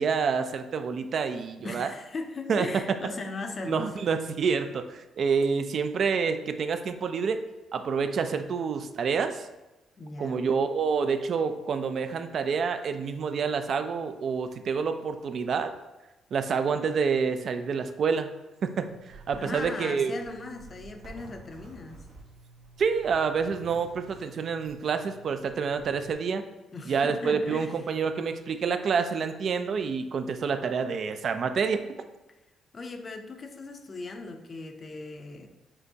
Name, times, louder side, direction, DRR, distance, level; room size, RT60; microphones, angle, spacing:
voice 1, 0.0-1.9 2.5-2.7 3.7-7.4 7.7-9.5 10.2-15.7 16.3-18.3 18.6-20.1 22.8-26.4 26.9-31.8, right 5 dB, 55° right, 8 dB, 0.3 m, -28 dB
voice 2, 1.6-4.0 10.0-10.4 19.4-22.0 26.7-27.8 32.7-35.5, left 3 dB, 40° left, 6 dB, 0.5 m, -38 dB
Zipper (clothing), 18.9-26.1, right 3 dB, 80° right, 1.2 m, -50 dB
5.5 x 2.9 x 2.7 m, 1.0 s
cardioid pair, 90°, 0 cm